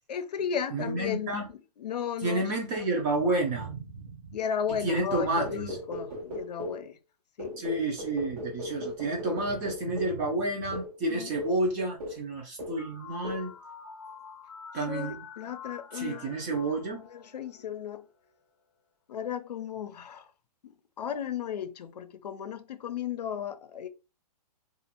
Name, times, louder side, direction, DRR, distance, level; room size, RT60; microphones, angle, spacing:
voice 1, 0.1-2.4 4.3-7.0 7.4-7.6 11.1-11.3 14.9-16.3 17.0-18.1 19.1-20.2 20.6-20.7 21.0-23.9, left 8 dB, 85° left, 0.5 m, -35 dB
voice 2, 0.7-1.5 2.2-4.2 4.8-5.8 7.6-13.5 14.7-15.2 15.9-17.0, right 2 dB, 20° right, 0.6 m, -30 dB
sound 1, 5.4-6.9 7.4-10.2 10.7-10.9 11.4-11.7 12.0-12.3 12.6-12.9 13.2-13.5, left 1 dB, 65° right, 1.0 m, -38 dB
sound 2, 12.8-17.8, left 7 dB, 50° left, 0.7 m, -46 dB
2.5 x 2.5 x 2.8 m
hypercardioid pair, 155°, 20 cm